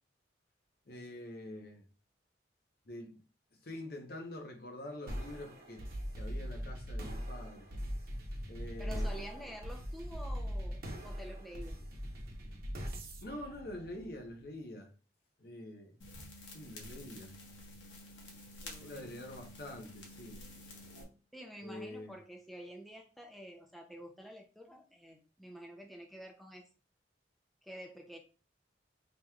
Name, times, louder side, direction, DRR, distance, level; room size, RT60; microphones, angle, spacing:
voice 1, 0.9-1.8 2.9-3.2 3.6-5.8 6.1-7.7 8.5-9.3 13.2-14.9 15.4-15.9 16.5-17.3 18.8-20.4 21.6-22.1, left 1 dB, 55° left, 0.8 m, -46 dB
sound 1, 5.1-14.5, equal, 50° right, 0.9 m, -41 dB
voice 2, 8.8-11.9 18.6-19.1 21.3-26.6 27.6-28.2, equal, ahead, 0.4 m, -49 dB
sound 2, 16.0-21.0, left 1 dB, 85° left, 1.2 m, -50 dB
5.2 x 3.0 x 2.3 m
head